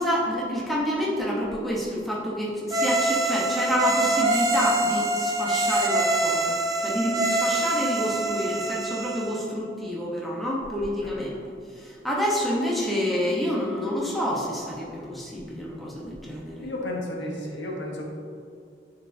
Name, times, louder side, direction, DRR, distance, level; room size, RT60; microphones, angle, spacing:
voice 1, 0.0-11.4 11.7-16.7, equal, ahead, -5 dB, 1.0 m, -28 dB
sound 1, 2.7-9.4, right 2 dB, 20° right, 0.6 m, -25 dB
voice 2, 11.0-11.4 16.6-18.0, left 1 dB, 80° left, -1 dB, 1.1 m, -33 dB
9.7 x 4.5 x 2.7 m, 2.3 s
head